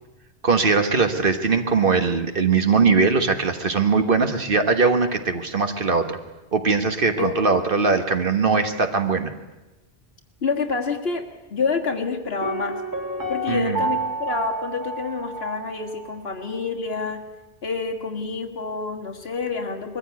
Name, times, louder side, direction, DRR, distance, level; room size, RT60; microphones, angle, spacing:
voice 1, 0.4-6.2 6.5-9.3 13.5-13.8, right 4 dB, 55° right, 7 dB, 1.6 m, -20 dB
voice 2, 10.4-11.3 11.5-12.8 13.3-17.2 17.6-20.0, left 4 dB, 65° left, 3 dB, 1.9 m, -27 dB
Piano, 12.4-16.2 16.4-16.5, right 2 dB, 20° right, 1.6 m, -30 dB
21.5 x 14.5 x 9.5 m, 1.1 s
omnidirectional pair, 1.1 m